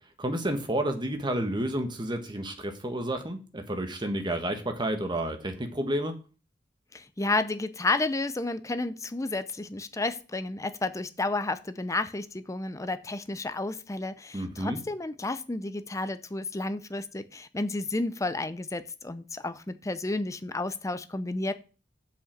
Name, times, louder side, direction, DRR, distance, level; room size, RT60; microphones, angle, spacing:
voice 1, 0.2-6.1 14.3-14.8, right 1 dB, 25° right, 6 dB, 1.4 m, -30 dB
voice 2, 6.9-21.5, left 2 dB, 15° left, 11 dB, 0.6 m, -31 dB
7.3 x 5.6 x 7.3 m, 0.36 s
head